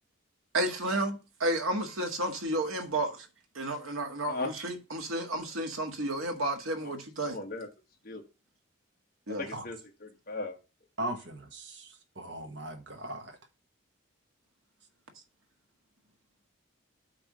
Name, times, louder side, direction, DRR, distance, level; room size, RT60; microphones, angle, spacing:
voice 1, 0.5-1.1 1.4-3.3 3.6-7.4 9.3-9.5, right 1 dB, 85° right, 1.8 m, -31 dB
voice 2, 7.2-7.7 8.0-8.2 9.3-10.6, left 2 dB, 45° left, 1.8 m, -37 dB
voice 3, 11.0-13.4, right 1 dB, 60° right, 1.4 m, -39 dB
8.7 x 3.5 x 6.3 m
head